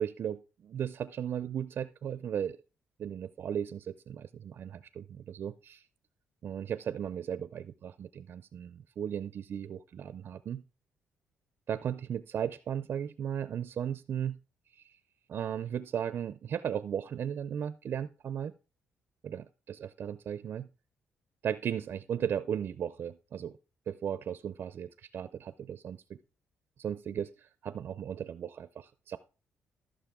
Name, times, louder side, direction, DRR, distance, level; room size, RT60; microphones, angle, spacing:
voice 1, 0.0-2.6 3.0-5.8 6.4-10.6 11.7-14.4 15.3-18.5 19.2-20.7 21.4-23.6 23.9-26.2 26.8-29.2, right 9 dB, 50° right, 14 dB, 0.4 m, -36 dB
14.5 x 6.4 x 3.6 m, 0.33 s
cardioid pair, 135°, 5 cm